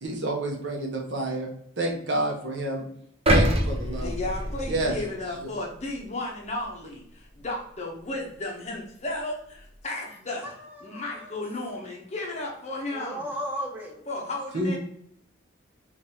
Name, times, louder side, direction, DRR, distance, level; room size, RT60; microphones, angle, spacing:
voice 1, 0.0-1.5 1.8-2.8 3.3-4.1 4.7-4.9 5.4-5.5 14.5-14.8, right 1 dB, 60° right, 0 dB, 1.0 m, -29 dB
sound 1, 3.3-5.4 5.9-6.0, equal, 30° right, 0.6 m, -25 dB
voice 2, 4.0-13.3 14.1-14.8, left 2 dB, 35° left, 0 dB, 0.8 m, -34 dB
voice 3, 10.4-11.3 12.9-14.0, equal, 10° right, -3 dB, 1.0 m, -36 dB
5.2 x 2.6 x 2.8 m, 0.71 s
head